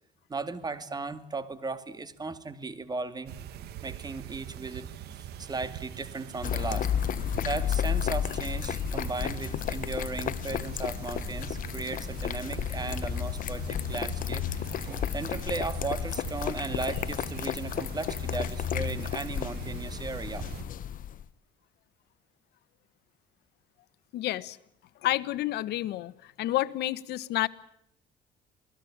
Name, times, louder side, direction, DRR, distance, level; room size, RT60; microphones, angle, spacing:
voice 1, 0.3-3.3 3.8-6.9 7.4-14.4 14.8-20.5, right 3 dB, 25° right, 12 dB, 2.5 m, -36 dB
sound 1, 3.3-20.6, right 10 dB, 75° right, 1.8 m, -42 dB
sound 2, 6.4-21.2, left 10 dB, 55° left, 1.1 m, -32 dB
voice 2, 24.1-24.6 25.0-26.1 26.4-27.5, left 15 dB, 75° left, 16 dB, 1.2 m, -29 dB
27.5 x 19.5 x 8.7 m, 0.75 s
cardioid pair, 110°, 17 cm